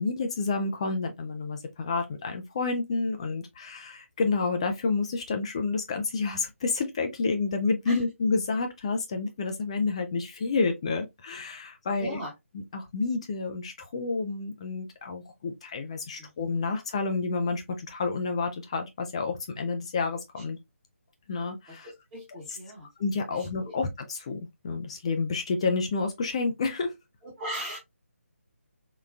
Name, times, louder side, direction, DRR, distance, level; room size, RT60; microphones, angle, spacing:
voice 1, 0.0-12.2 12.7-20.6 21.3-21.9 22.5-22.6 23.0-26.9, left 4 dB, 25° left, 0.3 m, -29 dB
voice 2, 11.9-12.3 16.2-16.3 21.7-22.9 23.3-23.7 27.4-27.8, equal, 15° right, 0.9 m, -39 dB
3.7 x 2.2 x 2.3 m
figure-of-eight pair, 150°, 8 cm